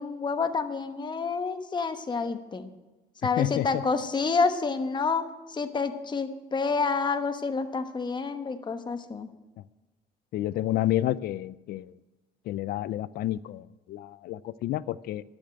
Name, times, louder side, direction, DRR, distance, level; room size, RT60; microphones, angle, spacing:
voice 1, 0.0-2.7 3.2-9.3, left 4 dB, 25° left, 9 dB, 1.1 m, -28 dB
voice 2, 3.4-3.8 10.3-11.9 12.5-15.2, left 14 dB, 65° left, 19 dB, 0.4 m, -30 dB
11.5 x 7.1 x 7.8 m, 1.1 s
cardioid pair, 110°, 17 cm